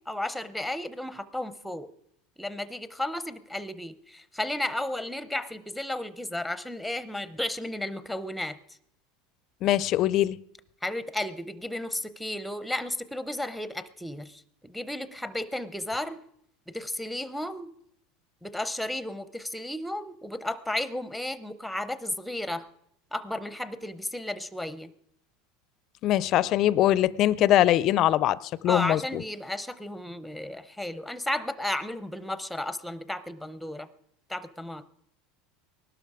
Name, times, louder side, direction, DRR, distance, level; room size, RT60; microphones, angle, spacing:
voice 1, 0.0-1.9 2.4-8.6 10.8-16.2 16.7-17.7 18.4-22.7 23.1-24.9 28.7-33.9 34.3-34.8, left 1 dB, ahead, 0.7 m, -33 dB
voice 2, 9.6-10.4 26.0-29.2, left 13 dB, 45° left, 0.5 m, -22 dB
19.5 x 12.0 x 4.8 m
supercardioid pair, 135°, 0 cm